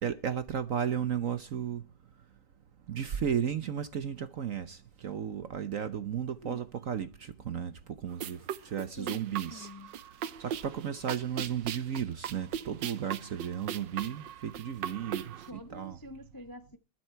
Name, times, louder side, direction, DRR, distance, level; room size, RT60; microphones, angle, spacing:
voice 1, 0.0-1.8 2.9-7.7 8.0-9.7 10.4-15.4 15.7-16.0, right 8 dB, 55° right, 1.0 m, -34 dB
sound 1, 8.1-15.5, right 10 dB, 70° right, 1.5 m, -39 dB
voice 2, 9.0-10.0 15.5-16.8, left 1 dB, 20° left, 0.6 m, -47 dB
21.0 x 7.6 x 4.5 m
omnidirectional pair, 2.1 m